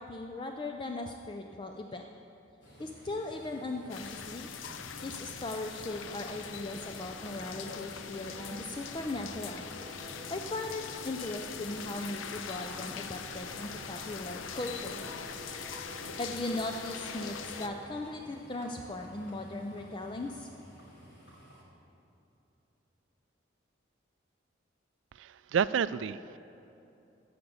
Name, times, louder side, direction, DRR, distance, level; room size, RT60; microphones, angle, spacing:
voice 1, 0.0-2.0 2.8-4.5 5.0-9.6 10.3-15.0 16.2-20.5, left 2 dB, 25° left, 4 dB, 0.4 m, -38 dB
Livestock farm animals working animals, 2.6-21.6, equal, 70° left, 2.9 m, -52 dB
sound 1, 3.9-17.7, left 7 dB, 85° left, 0.6 m, -42 dB
sound 2, 6.6-17.8, equal, 50° left, 2.7 m, -50 dB
voice 2, 25.2-26.4, right 7 dB, 75° right, 16 dB, 0.3 m, -30 dB
14.0 x 5.1 x 8.1 m, 2.9 s
head